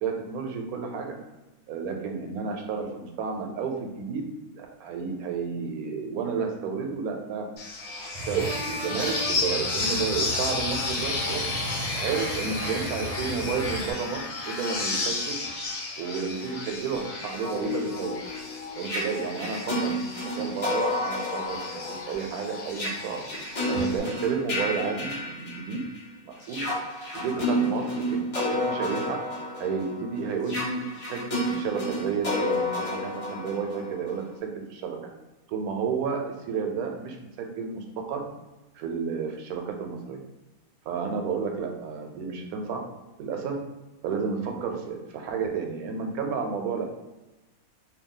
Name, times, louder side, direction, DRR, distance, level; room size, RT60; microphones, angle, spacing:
voice 1, 0.0-1.2 1.7-4.2 4.5-7.5 8.0-11.4 12.0-15.4 16.0-18.2 18.8-23.2 23.6-25.8 26.2-26.7 27.1-29.2 29.6-30.8 31.1-32.7 33.0-35.0 35.5-38.2 38.7-40.2 40.8-42.8 43.2-43.6 44.0-46.9, right 5 dB, 80° right, 3 dB, 1.0 m, -31 dB
sound 1, 7.6-24.0, left 3 dB, 70° left, 1.1 m, -33 dB
sound 2, 8.1-13.9, right 1 dB, 50° right, 0.4 m, -35 dB
sound 3, 17.1-26.0 26.4-34.2, left 1 dB, 40° left, 0.5 m, -31 dB
2.7 x 2.3 x 3.6 m, 1.0 s
omnidirectional pair, 1.5 m